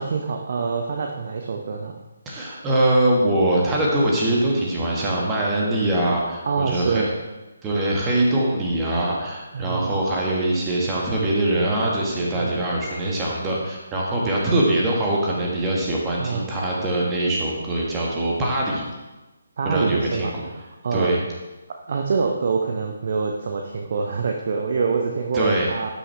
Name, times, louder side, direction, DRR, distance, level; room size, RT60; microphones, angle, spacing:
voice 1, 0.0-1.9 6.1-6.2 6.5-7.1 9.5-10.0 12.3-12.7 16.2-16.5 19.6-21.1 21.9-25.9, right 4 dB, 45° right, 2 dB, 0.7 m, -25 dB
voice 2, 2.2-7.1 7.6-18.9 19.6-20.3 20.9-21.2 25.3-25.7, right 1 dB, 15° right, -3 dB, 1.5 m, -23 dB
12.5 x 6.3 x 3.3 m, 1.1 s
figure-of-eight pair, 145°, 0 cm